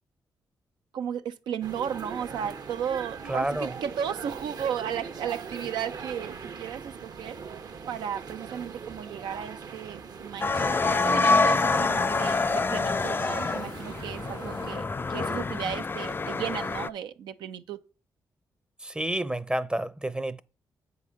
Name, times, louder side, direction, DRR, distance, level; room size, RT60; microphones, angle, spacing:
voice 1, 0.9-7.4 7.9-17.8, right 8 dB, 85° right, 0.6 m, -35 dB
sound 1, 1.6-14.8, right 5 dB, 60° right, 1.0 m, -41 dB
voice 2, 3.3-3.7 18.8-20.4, right 1 dB, 10° right, 0.7 m, -29 dB
sound 2, 10.4-16.9, left 3 dB, 30° left, 0.4 m, -26 dB
7.7 x 4.0 x 6.3 m
supercardioid pair, 50°, 8 cm